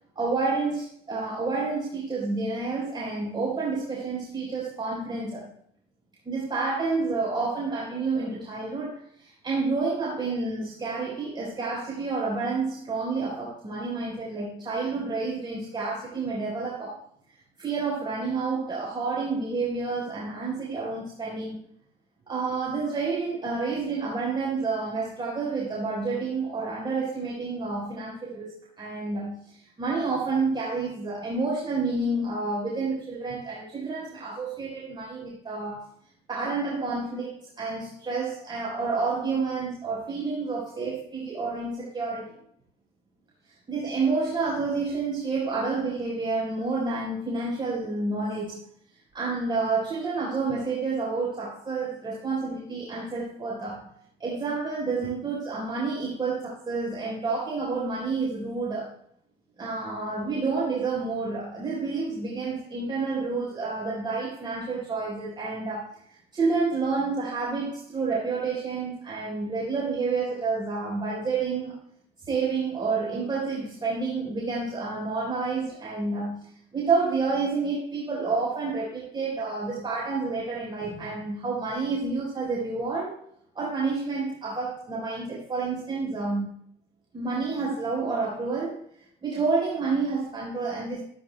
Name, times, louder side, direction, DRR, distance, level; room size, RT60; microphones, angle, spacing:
voice 1, 0.1-5.5 6.2-17.0 17.3-21.6 22.3-35.9 36.3-42.4 43.4-48.6 49.1-53.9 54.2-58.9 59.6-71.7 72.2-83.2 83.5-86.5 87.1-88.8 89.2-91.0, right 4 dB, 30° right, 4.5 m, -29 dB
15.0 x 14.0 x 2.3 m
cardioid pair, 110°, 17 cm